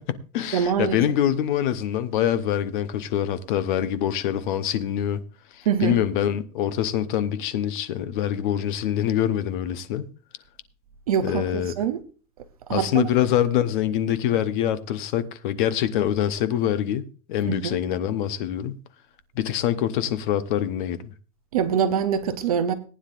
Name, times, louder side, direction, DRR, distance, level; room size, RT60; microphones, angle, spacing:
voice 1, 0.0-5.2 5.5-10.1 11.2-11.7 12.7-18.8 19.3-21.1, left 10 dB, 35° left, 0.9 m, -25 dB
voice 2, 0.5-1.0 5.7-6.0 11.1-12.0 12.7-13.1 17.4-17.7 21.5-22.7, right 8 dB, 25° right, 0.5 m, -24 dB
19.0 x 9.7 x 2.5 m
supercardioid pair, 170°, 45 cm